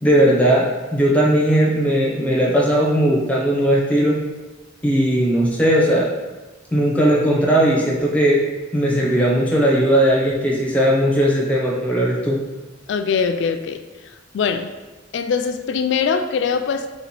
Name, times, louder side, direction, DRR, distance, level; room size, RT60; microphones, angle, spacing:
voice 1, 0.0-4.2 4.8-6.1 6.7-8.4 8.7-12.4, equal, 5° left, -3 dB, 0.6 m, -17 dB
voice 2, 12.9-13.8 14.3-14.7 15.1-16.9, left 6 dB, 65° left, 8 dB, 0.3 m, -22 dB
3.8 x 2.9 x 4.0 m, 1.2 s
head